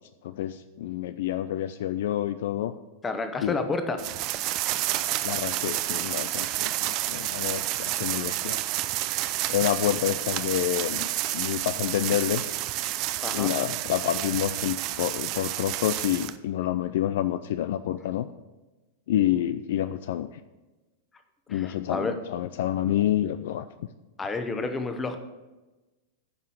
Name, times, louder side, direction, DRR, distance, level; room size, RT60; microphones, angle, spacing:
voice 1, 0.2-2.7 3.4-3.6 5.2-8.6 9.5-11.1 11.3-12.5 13.3-18.3 19.1-20.3 21.5-23.7, left 12 dB, 55° left, 12 dB, 0.3 m, -28 dB
voice 2, 3.0-4.0 13.2-13.5 21.5-22.1 24.2-25.2, left 3 dB, 15° left, 8 dB, 1.0 m, -30 dB
sound 1, 4.0-16.4, right 15 dB, 40° right, 0.4 m, -30 dB
9.7 x 5.5 x 6.4 m, 1.1 s
figure-of-eight pair, 90°, 0 cm